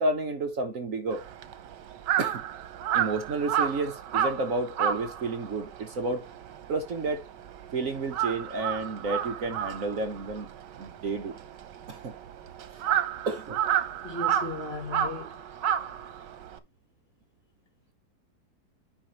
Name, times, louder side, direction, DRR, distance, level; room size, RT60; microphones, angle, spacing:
voice 1, 0.0-1.3 2.2-2.4 2.9-6.2 6.7-7.2 7.7-10.5 10.8-11.3 11.9-12.1 12.9-13.0 13.3-13.6, right 3 dB, 55° right, 1.3 m, -31 dB
Crow, 1.1-7.7 8.0-16.6, right 9 dB, 85° right, 1.5 m, -30 dB
voice 2, 14.0-15.3, left 2 dB, 35° left, 2.1 m, -36 dB
10.0 x 5.3 x 3.0 m
omnidirectional pair, 1.8 m